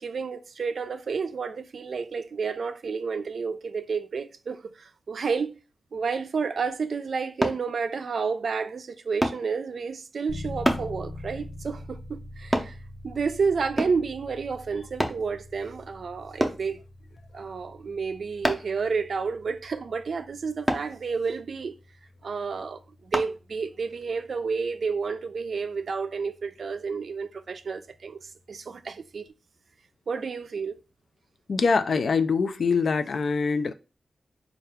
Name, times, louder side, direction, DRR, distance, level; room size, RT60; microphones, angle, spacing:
voice 1, 0.0-5.6 5.9-12.8 13.0-16.8 17.3-21.8 22.2-29.3 30.1-30.8, right 5 dB, 65° right, 0.3 m, -30 dB
sound 1, 7.4-7.6 9.2-9.4 10.6-10.9 12.5-12.7 13.8-14.1 15.0-15.2 16.4-16.6 18.4-18.8 20.7-20.9 23.1-23.3 23.9-24.0, equal, 5° right, 0.5 m, -26 dB
sound 2, 10.3-27.0, left 1 dB, 35° left, 0.8 m, -45 dB
voice 2, 31.5-33.7, left 5 dB, 65° left, 0.3 m, -24 dB
4.4 x 2.3 x 3.5 m
wide cardioid pair, 100°, 0 cm